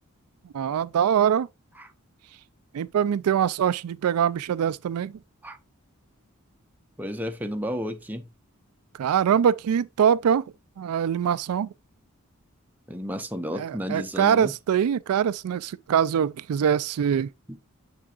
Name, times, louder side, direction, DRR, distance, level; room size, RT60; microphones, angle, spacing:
voice 1, 0.5-1.5 2.7-5.1 9.0-10.4 10.8-11.7 13.5-17.3, right 8 dB, 90° right, 0.3 m, -23 dB
voice 2, 7.0-8.3 12.9-14.5 17.5-17.6, equal, 10° right, 0.6 m, -32 dB
6.8 x 6.1 x 2.4 m
head